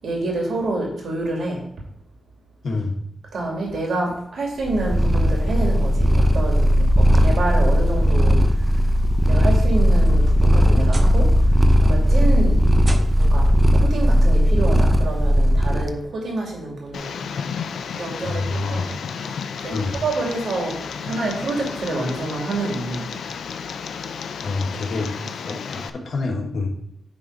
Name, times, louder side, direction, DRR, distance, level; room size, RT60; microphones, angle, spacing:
voice 1, 0.0-1.6 3.3-8.7 9.3-12.6 13.2-17.2 18.0-18.9 19.3-23.1, right 2 dB, 75° right, -1 dB, 2.6 m, -28 dB
voice 2, 2.6-2.9 18.2-18.9 19.2-19.3 19.7-20.0 24.4-26.7, left 3 dB, 65° left, 0 dB, 1.7 m, -27 dB
Purr, 4.6-15.9, equal, 10° right, 0.7 m, -17 dB
sound 1, 10.0-11.4 11.7-12.1 12.8-13.5 14.7-14.8 15.4-15.5 17.1-17.2, right 2 dB, 35° right, 0.9 m, -37 dB
Tick, 16.9-25.9, left 6 dB, 85° left, 0.5 m, -32 dB
9.7 x 3.9 x 4.8 m, 0.78 s
cardioid pair, 80°, 0 cm